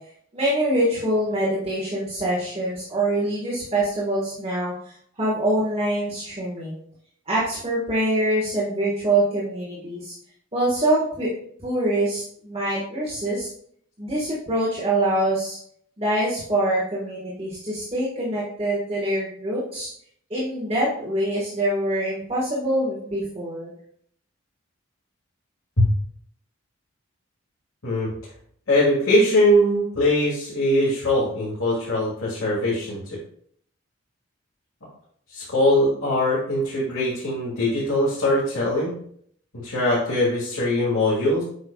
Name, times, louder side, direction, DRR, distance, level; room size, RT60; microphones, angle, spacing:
voice 1, 0.3-6.8 7.3-10.1 10.5-11.3 11.6-13.5 14.0-15.6 16.0-19.9 20.3-23.7, right 1 dB, 25° right, -7 dB, 1.5 m, -24 dB
voice 2, 28.7-33.2 35.3-38.9 39.6-41.4, left 1 dB, 90° left, -8 dB, 2.1 m, -21 dB
7.8 x 5.7 x 2.3 m, 0.64 s
head